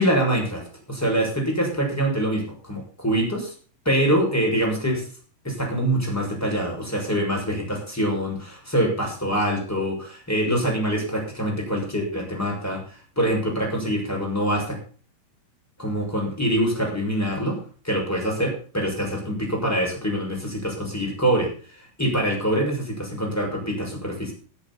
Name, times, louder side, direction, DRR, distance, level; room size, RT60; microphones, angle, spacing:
voice 1, 0.0-3.5 3.8-5.0 5.4-12.8 13.2-14.8 15.8-17.6 17.8-21.5 22.0-24.3, equal, 5° left, 1 dB, 5.8 m, -24 dB
13.5 x 13.0 x 4.1 m, 0.40 s
omnidirectional pair, 4.0 m